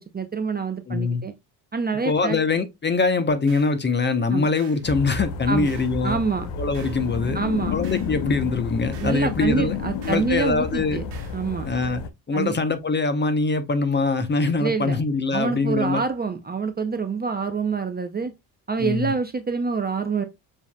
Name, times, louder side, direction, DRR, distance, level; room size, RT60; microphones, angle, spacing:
voice 1, 0.0-1.3 1.7-2.4 4.3-4.5 5.5-5.7 6.0-6.5 7.3-7.8 9.0-11.0 11.3-11.7 12.3-12.6 14.6-15.0 15.3-18.3 18.7-20.2, right 5 dB, 20° right, 0.6 m, -26 dB
voice 2, 0.9-1.2 2.0-6.2 6.6-7.4 7.7-9.7 10.0-11.0 11.6-12.0 12.3-16.0 18.8-19.1, left 4 dB, 20° left, 0.7 m, -23 dB
sound 1, 3.5-3.8 4.6-4.9 5.6-6.0 6.7-7.1 7.8-8.2 8.9-9.2 10.0-10.3 11.1-11.4, right 10 dB, 80° right, 1.3 m, -48 dB
sound 2, 4.8-12.1, left 5 dB, 65° left, 0.8 m, -31 dB
6.9 x 2.7 x 2.2 m
hypercardioid pair, 60°, 49 cm